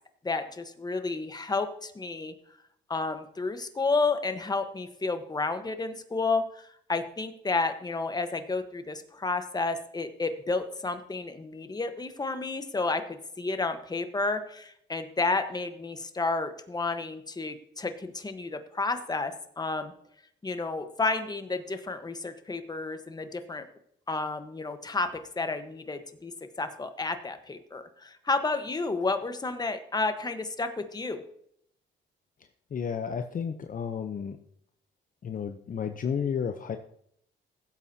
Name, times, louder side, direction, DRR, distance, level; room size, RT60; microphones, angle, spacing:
voice 1, 0.2-2.3 2.9-19.9 20.4-23.7 24.1-25.1 25.4-26.3 26.6-31.2, left 3 dB, 20° left, 8 dB, 1.2 m, -31 dB
voice 2, 32.7-34.4 35.2-36.8, left 7 dB, 45° left, 7 dB, 0.7 m, -32 dB
16.0 x 8.1 x 2.8 m, 0.70 s
cardioid pair, 90°, 20 cm